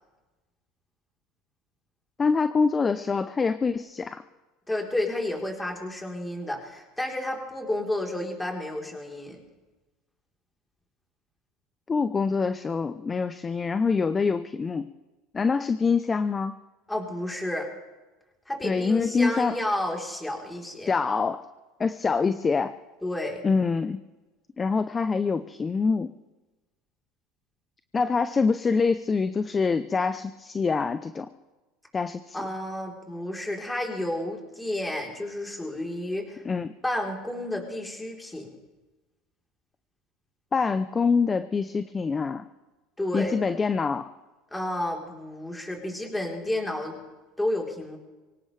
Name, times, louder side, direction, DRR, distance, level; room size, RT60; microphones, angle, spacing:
voice 1, 2.2-4.2 11.9-14.9 15.3-16.5 18.6-19.5 20.9-21.5 21.8-22.7 23.4-24.0 24.6-26.1 27.9-31.3 31.9-32.4 36.5-36.7 40.5-42.4 43.1-44.1, left 4 dB, 25° left, 11 dB, 0.7 m, -25 dB
voice 2, 4.7-9.4 16.9-17.7 18.5-20.9 23.0-23.4 32.3-36.4 36.8-38.5 43.0-43.3 44.5-47.0 47.4-48.0, left 1 dB, 5° left, 0 dB, 3.9 m, -31 dB
24.0 x 17.5 x 3.4 m, 1.2 s
supercardioid pair, 110°, 0 cm